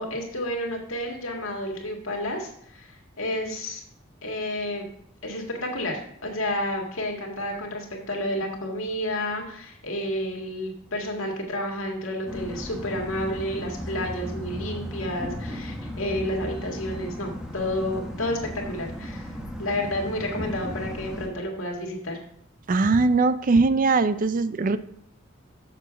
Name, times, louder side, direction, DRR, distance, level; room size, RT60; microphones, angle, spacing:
voice 1, 0.0-3.8 4.2-4.9 5.2-19.3 19.6-22.2, left 1 dB, 80° left, 1 dB, 1.9 m, -30 dB
sound 1, 12.3-21.3, equal, 5° right, 1.0 m, -35 dB
voice 2, 22.7-24.8, right 3 dB, 40° right, 13 dB, 0.4 m, -21 dB
6.8 x 6.8 x 5.0 m, 0.66 s
head